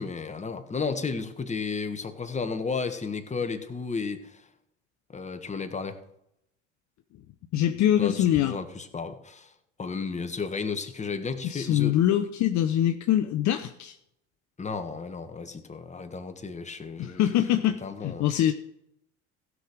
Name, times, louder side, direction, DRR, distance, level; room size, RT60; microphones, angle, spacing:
voice 1, 0.0-4.4 5.1-6.0 8.0-9.5 9.8-12.0 14.6-17.2 17.8-18.5, left 4 dB, 20° left, 7 dB, 1.5 m, -33 dB
voice 2, 7.5-8.6 11.5-13.9 17.0-18.5, left 11 dB, 50° left, 7 dB, 0.8 m, -24 dB
15.5 x 6.3 x 5.1 m, 0.77 s
hypercardioid pair, 70°, 36 cm